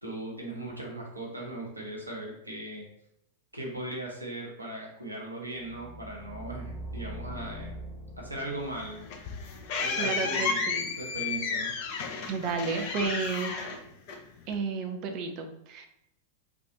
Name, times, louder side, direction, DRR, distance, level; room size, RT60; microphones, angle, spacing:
voice 1, 0.0-2.9 3.5-7.7 8.2-9.1 9.8-11.7, right 1 dB, 85° right, -1 dB, 0.9 m, -38 dB
sound 1, 5.6-10.5, right 1 dB, 30° left, 1.3 m, -43 dB
sound 2, 8.7-14.5, left 5 dB, 45° left, 0.5 m, -32 dB
voice 2, 10.0-10.9 12.3-13.7 14.5-15.9, right 5 dB, 40° right, 5 dB, 0.5 m, -32 dB
3.4 x 2.5 x 3.9 m, 0.76 s
figure-of-eight pair, 90°, 0 cm